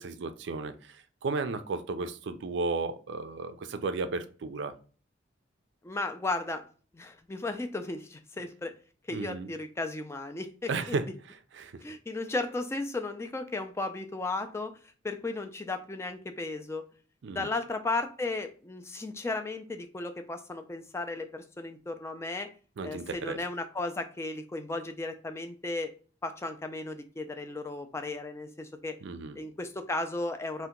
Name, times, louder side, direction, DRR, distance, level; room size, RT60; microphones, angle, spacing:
voice 1, 0.0-4.7 9.1-9.5 10.7-11.8 17.2-17.5 22.8-23.4 29.0-29.4, right 3 dB, 65° right, 0.4 m, -34 dB
voice 2, 5.8-6.7 6.9-8.7 9.1-11.0 11.8-14.7 15.0-16.9 17.3-22.5 22.8-25.9 26.2-29.0 29.4-30.7, left 2 dB, 15° left, 0.3 m, -35 dB
2.8 x 2.1 x 3.6 m
head